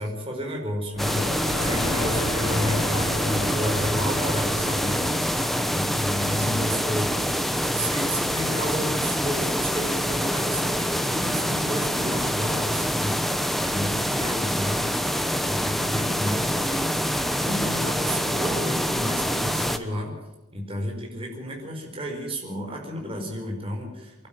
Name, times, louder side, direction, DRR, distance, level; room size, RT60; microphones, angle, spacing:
voice 1, 0.0-7.3 7.6-14.9 15.3-20.1 20.5-24.3, equal, 25° right, 0 dB, 5.0 m, -31 dB
Thunder, 0.9-6.3, left 1 dB, 75° left, 7.3 m, -33 dB
sound 1, 1.0-19.8, equal, ahead, 0.9 m, -26 dB
24.5 x 12.0 x 9.2 m, 1.0 s
head